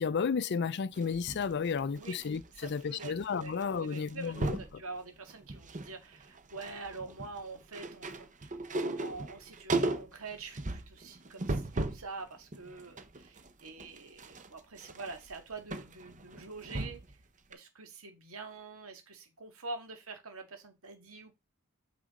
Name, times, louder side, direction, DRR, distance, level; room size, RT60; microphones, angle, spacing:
voice 1, 0.0-4.8, left 6 dB, 55° left, 0.4 m, -33 dB
sound 1, 0.9-3.1 3.4-3.6 3.9-4.7 5.3-5.9 6.2-12.1 12.5-17.2 17.5-17.6, right 2 dB, 35° right, 0.9 m, -37 dB
voice 2, 1.9-2.2 2.6-3.1 3.4-17.0 17.5-21.3, right 3 dB, 80° right, 1.9 m, -46 dB
8.3 x 4.9 x 3.7 m
head